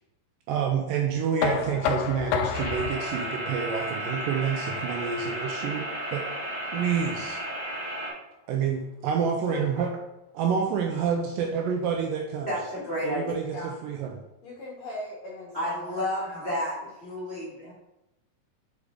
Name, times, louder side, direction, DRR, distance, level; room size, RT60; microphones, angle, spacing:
voice 1, 0.5-5.8 6.1-6.2 6.7-7.4 8.5-9.9 10.3-12.5 13.0-14.2, right 7 dB, 80° right, 2 dB, 2.1 m, -28 dB
Knock, 1.4-7.2, left 7 dB, 85° left, 1.9 m, -33 dB
sound 1, 2.5-8.1, right 1 dB, 20° left, 1.8 m, -33 dB
voice 2, 9.5-9.9 13.5-13.8 14.4-16.7 17.6-17.7, left 1 dB, 70° left, -2 dB, 1.7 m, -40 dB
voice 3, 12.5-13.3 15.5-16.7 17.0-17.7, equal, 40° left, -8 dB, 0.9 m, -31 dB
6.5 x 4.9 x 3.6 m, 0.92 s
omnidirectional pair, 4.4 m